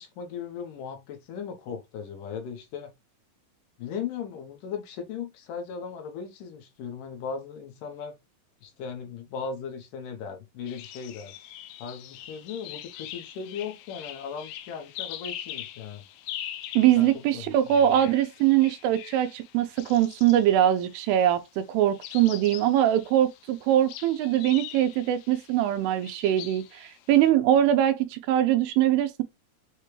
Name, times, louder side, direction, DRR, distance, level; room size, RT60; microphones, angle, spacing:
voice 1, 0.0-2.9 3.8-8.2 8.6-11.3 11.8-16.0 17.0-17.4, left 6 dB, 70° left, 2.3 m, -37 dB
sound 1, 10.7-21.2 21.9-27.3, left 12 dB, 90° left, 2.4 m, -43 dB
voice 2, 16.8-29.2, right 11 dB, 90° right, 2.4 m, -22 dB
6.6 x 2.2 x 3.0 m
omnidirectional pair, 4.1 m